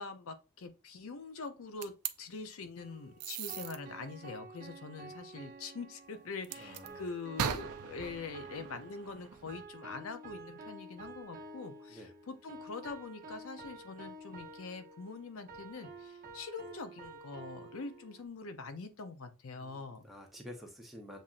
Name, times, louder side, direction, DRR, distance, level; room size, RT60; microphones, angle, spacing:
voice 1, 0.0-20.0, left 4 dB, 65° left, 0.5 m, -44 dB
sound 1, 1.8-2.1 3.2-3.8 6.4-6.9 7.4-9.6, right 8 dB, 80° right, 0.5 m, -39 dB
sound 2, 2.8-18.2, right 2 dB, 35° right, 1.0 m, -50 dB
voice 2, 6.6-7.0 11.9-12.1 19.5-21.2, left 1 dB, ahead, 0.9 m, -50 dB
7.2 x 2.5 x 2.5 m
head